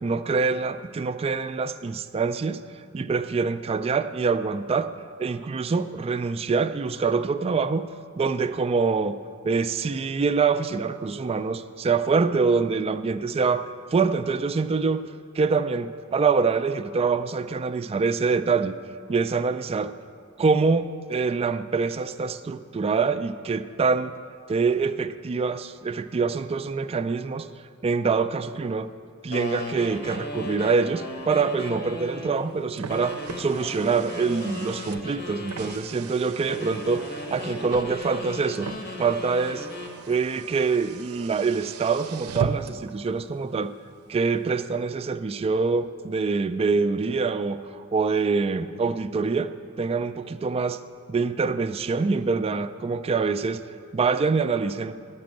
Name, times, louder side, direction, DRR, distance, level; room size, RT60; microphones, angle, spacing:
voice 1, 0.0-2.6 2.9-4.9 5.2-7.9 8.2-9.2 9.4-15.1 15.4-18.8 19.1-19.9 20.4-24.1 24.5-27.5 27.8-28.9 29.2-38.7 39.0-39.7 40.1-43.7 44.1-49.5 49.8-50.8 51.1-53.6 53.9-54.9, right 4 dB, 25° right, 10 dB, 0.3 m, -25 dB
sound 1, 29.3-32.4 32.9-35.8 36.5-40.0, left 2 dB, 45° left, 1.1 m, -37 dB
Car, 32.3-42.9, right 5 dB, 85° right, 0.5 m, -38 dB
10.5 x 6.0 x 7.6 m, 2.2 s
head